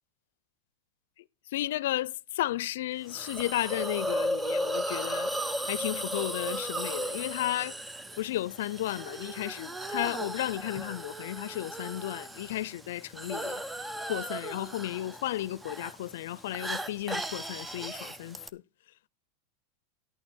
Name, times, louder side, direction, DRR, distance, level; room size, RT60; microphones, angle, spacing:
voice 1, 1.5-5.3 5.7-7.8 8.2-13.6 14.1-18.6, left 14 dB, 75° left, 0.5 m, -33 dB
Hiss, 3.1-18.5, equal, 5° right, 0.6 m, -36 dB
11.5 x 8.8 x 4.3 m
supercardioid pair, 150°, 0 cm